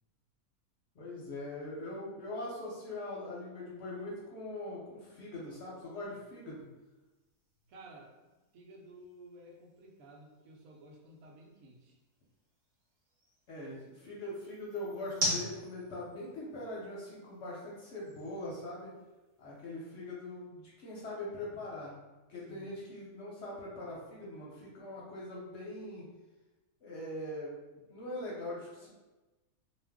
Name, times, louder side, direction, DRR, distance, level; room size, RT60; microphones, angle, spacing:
voice 1, 1.0-6.7 13.5-18.9 19.4-21.9 22.3-26.1 26.8-27.5 27.9-28.9, left 1 dB, 60° left, -5 dB, 0.8 m, -42 dB
sound 1, 5.4-19.6, equal, 40° right, 1.0 m, -44 dB
voice 2, 7.7-8.1 8.5-12.0 22.5-22.7 27.7-28.0 28.7-28.9, right 1 dB, 75° right, 0 dB, 1.0 m, -54 dB
2.5 x 2.1 x 3.4 m, 1.1 s
omnidirectional pair, 1.6 m